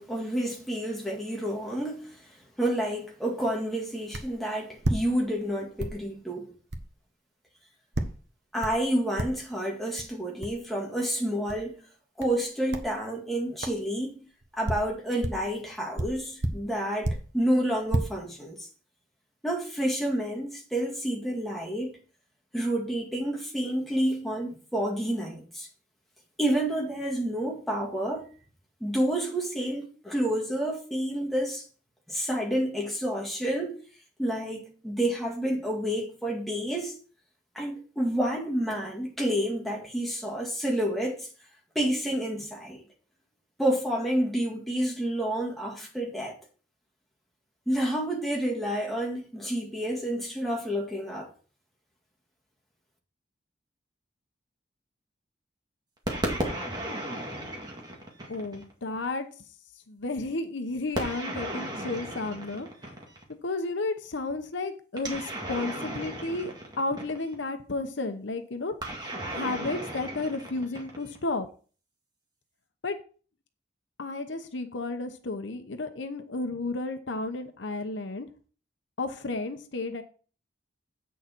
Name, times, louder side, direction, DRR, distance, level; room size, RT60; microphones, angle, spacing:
voice 1, 0.0-2.2 2.6-6.5 8.5-11.7 12.2-14.2 14.5-18.7 19.4-22.0 22.5-25.7 26.4-28.3 28.8-31.6 32.1-33.8 34.2-37.0 37.5-41.3 41.8-42.8 43.6-46.4 47.7-51.3, right 1 dB, ahead, 2.0 m, -29 dB
sound 1, 4.1-4.4 4.8-5.5 5.8-6.0 6.7-6.9 7.9-8.2 8.6-8.9 9.2-9.5 10.0-10.1 10.4-10.6 11.5-11.6 12.2-12.4 12.7-12.9 13.6-13.8 14.4-15.5 15.9-17.4 17.7-18.0, right 1 dB, 70° right, 1.1 m, -31 dB
sound 2, 56.1-58.7 60.9-63.3 65.0-67.4 68.8-71.2, right 1 dB, 25° right, 2.0 m, -35 dB
voice 2, 58.3-59.3 59.9-62.7 63.4-68.7 69.3-71.5 72.8-73.0 74.0-78.3 79.0-80.0, left 2 dB, 85° left, 0.9 m, -32 dB
8.5 x 6.5 x 4.5 m
head